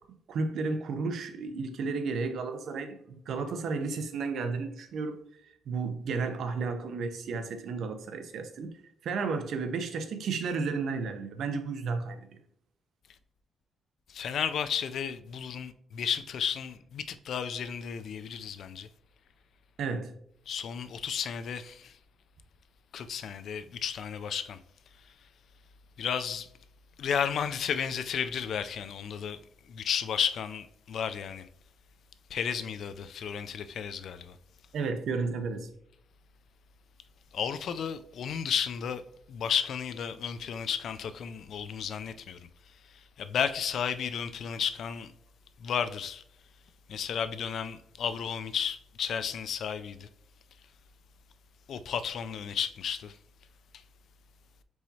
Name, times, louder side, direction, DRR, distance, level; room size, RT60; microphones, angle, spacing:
voice 1, 0.3-5.2 5.7-8.7 9.0-12.3 19.8-20.1 34.7-35.7, right 4 dB, 65° right, 0.6 m, -32 dB
voice 2, 14.1-18.9 20.5-21.9 22.9-24.6 26.0-26.5 27.0-29.4 29.7-31.5 32.3-34.3 37.3-39.0 39.3-42.4 43.2-45.1 45.6-46.2 46.9-50.1 51.7-53.2, left 7 dB, 60° left, 0.3 m, -33 dB
4.7 x 4.1 x 2.7 m
cardioid pair, 130°, 0 cm